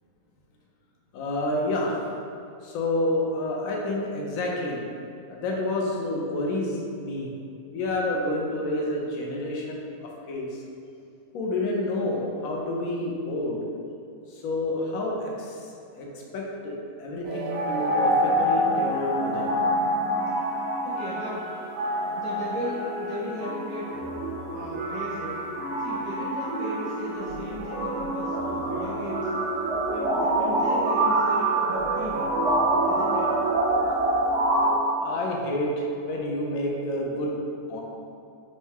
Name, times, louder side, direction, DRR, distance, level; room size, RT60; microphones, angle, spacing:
voice 1, 1.1-2.0 2.6-4.8 5.3-7.3 7.7-9.8 10.3-10.6 11.3-13.6 14.3-16.1 16.3-19.6 35.0-37.3 37.7-37.8, left 1 dB, 70° left, -1 dB, 1.0 m, -29 dB
sound 1, 17.2-34.8, right 1 dB, 60° right, 0.8 m, -26 dB
voice 2, 20.8-21.5 22.1-24.0 24.5-25.4 25.8-29.3 29.9-32.3 32.7-33.3, equal, 35° left, -11 dB, 1.1 m, -36 dB
5.3 x 2.3 x 3.5 m, 2.5 s
omnidirectional pair, 1.6 m